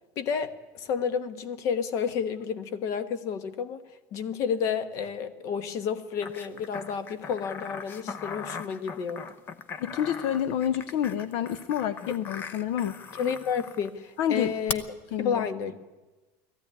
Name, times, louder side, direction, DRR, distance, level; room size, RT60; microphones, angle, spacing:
voice 1, 0.2-3.8 4.1-9.2 13.2-14.8 15.2-15.7, left 7 dB, 45° left, 13 dB, 1.3 m, -30 dB
sound 1, 6.2-13.9 14.7-14.8, left 6 dB, 25° left, 0.8 m, -39 dB
voice 2, 9.8-13.0 14.2-14.5 15.1-15.5, left 10 dB, 60° left, 13 dB, 0.7 m, -28 dB
19.0 x 14.5 x 9.7 m, 1.1 s
cardioid pair, 165°, 8 cm